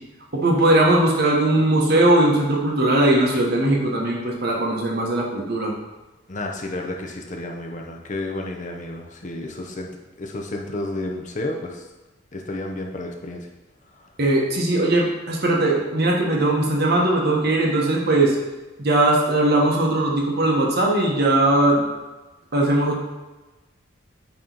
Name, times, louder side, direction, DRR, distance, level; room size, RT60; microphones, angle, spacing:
voice 1, 0.3-5.7 14.2-18.4 18.8-21.9 22.5-23.0, right 1 dB, 50° right, -1 dB, 1.2 m, -19 dB
voice 2, 6.3-9.9 10.2-11.9 12.3-13.4 14.0-14.1, left 2 dB, 35° left, 1 dB, 0.7 m, -31 dB
8.6 x 3.0 x 3.9 m, 1.1 s
head